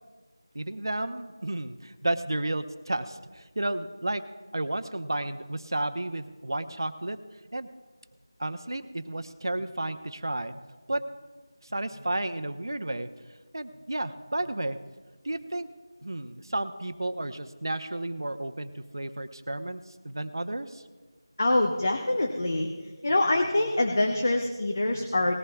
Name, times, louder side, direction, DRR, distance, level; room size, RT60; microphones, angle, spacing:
voice 1, 0.5-4.2 4.5-7.2 7.5-7.7 8.4-10.5 10.9-11.0 11.7-13.1 13.5-14.8 15.2-15.7 16.0-20.8, right 1 dB, 60° right, 10 dB, 0.9 m, -32 dB
voice 2, 21.4-22.7 23.0-25.3, left 2 dB, 35° left, 3 dB, 0.9 m, -25 dB
19.5 x 14.5 x 2.3 m, 1.4 s
figure-of-eight pair, 175°, 2 cm